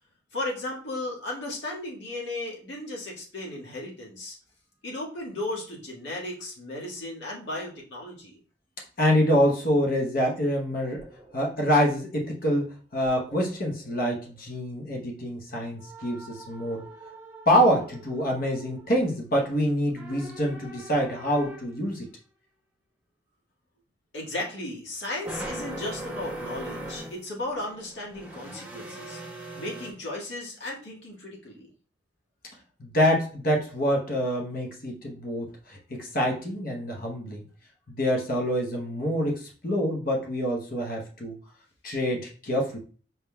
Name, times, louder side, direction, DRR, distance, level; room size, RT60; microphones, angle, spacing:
voice 1, 0.3-4.4 4.8-8.4 24.1-29.2 29.5-31.7, left 1 dB, 70° left, -4 dB, 1.7 m, -35 dB
voice 2, 9.0-11.0 11.3-16.8 17.5-22.1 32.8-37.5 37.9-41.4 41.8-42.8, equal, 50° left, 0 dB, 0.9 m, -26 dB
sound 1, 11.0-11.5 11.9-12.0 13.0-14.0 15.8-18.9 20.0-21.8 25.2-27.2 27.5-29.9, right 1 dB, 10° right, 1.0 m, -41 dB
5.7 x 3.6 x 2.2 m, 0.41 s
head